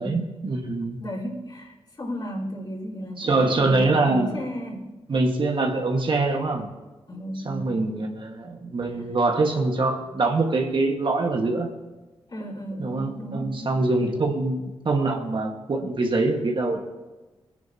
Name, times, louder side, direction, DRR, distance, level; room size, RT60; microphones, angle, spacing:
voice 1, 0.0-1.0 3.2-4.4 5.1-6.7 7.5-11.7 12.8-16.8, right 3 dB, 55° right, 2 dB, 1.7 m, -24 dB
voice 2, 1.0-4.9 7.1-7.8 8.9-9.1 12.3-13.8, equal, 45° left, -6 dB, 4.4 m, -34 dB
22.0 x 10.5 x 2.9 m, 1.1 s
cardioid pair, 55°, 10 cm